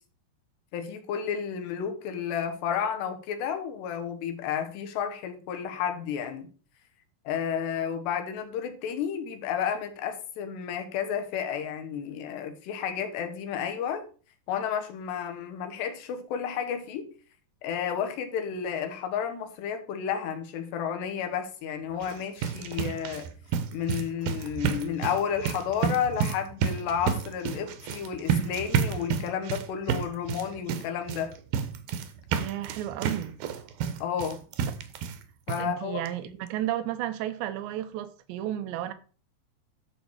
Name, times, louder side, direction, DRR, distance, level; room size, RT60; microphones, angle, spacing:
voice 1, 0.7-6.5 7.3-14.1 14.5-17.1 17.6-23.3 23.7-31.3 34.0-34.4 35.5-36.0, left 8 dB, 75° left, 3.4 m, -31 dB
sound 1, 21.9-35.2 35.5-35.6 36.1-36.2 36.5-36.6, right 7 dB, 70° right, 2.5 m, -31 dB
voice 2, 32.3-33.4 35.6-38.9, right 12 dB, 90° right, 3.2 m, -33 dB
11.5 x 6.5 x 4.7 m
omnidirectional pair, 5.0 m